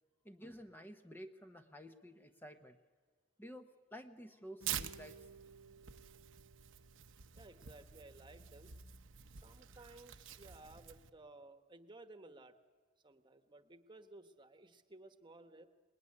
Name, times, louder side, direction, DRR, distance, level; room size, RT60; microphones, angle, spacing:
voice 1, 0.2-2.8 3.4-5.2, equal, 10° left, 6 dB, 0.9 m, -52 dB
sound 1, 4.6-7.2, right 4 dB, 70° left, 6.3 m, -58 dB
Tearing, 4.6-11.1, right 10 dB, 90° right, 1.0 m, -47 dB
voice 2, 7.3-8.7 9.3-12.5 13.0-15.7, right 2 dB, 25° right, 9 dB, 1.3 m, -57 dB
26.0 x 20.5 x 9.8 m, 1.4 s
head